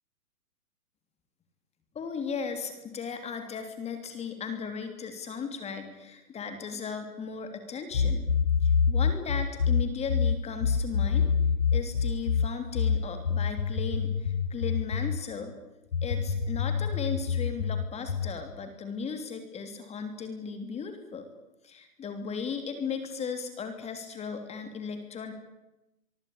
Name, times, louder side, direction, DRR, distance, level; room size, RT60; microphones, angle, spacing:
voice 1, 1.9-8.3 8.6-11.3 11.7-15.5 16.0-21.3 21.6-25.3, left 6 dB, 15° left, 7 dB, 3.1 m, -36 dB
sound 1, 7.9-15.2 15.9-18.4, left 6 dB, 80° left, 1.5 m, -26 dB
24.5 x 23.5 x 8.5 m, 0.92 s
hypercardioid pair, 135°, 46 cm